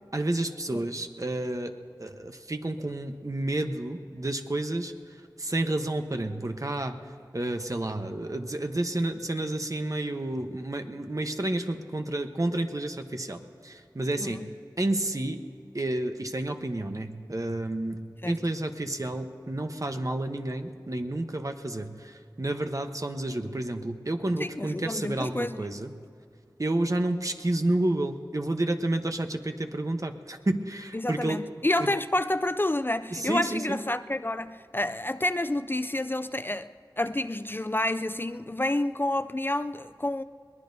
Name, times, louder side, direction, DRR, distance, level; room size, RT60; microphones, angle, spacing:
voice 1, 0.1-1.7 2.0-4.9 5.4-7.0 7.3-14.4 14.8-15.4 15.7-25.9 26.6-31.4 31.8-31.9 33.1-33.8, right 1 dB, 45° right, 1.0 m, -30 dB
voice 2, 24.4-25.6 30.9-36.7 37.0-40.2, left 1 dB, 25° left, 0.4 m, -29 dB
22.0 x 19.5 x 2.7 m
wide cardioid pair, 40°, 8 cm